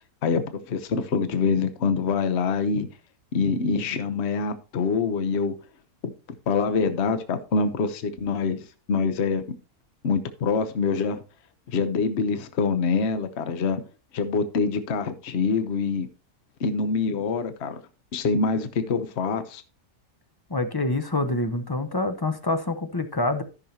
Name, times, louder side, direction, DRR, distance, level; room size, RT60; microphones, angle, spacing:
voice 1, 0.2-2.9 3.3-5.5 6.0-6.1 6.5-9.4 10.0-11.2 11.7-13.8 14.1-16.1 16.6-17.8 18.1-19.6, left 5 dB, 50° left, 1.1 m, -25 dB
voice 2, 20.5-23.4, left 2 dB, 25° left, 0.6 m, -26 dB
13.5 x 6.4 x 2.8 m
omnidirectional pair, 1.6 m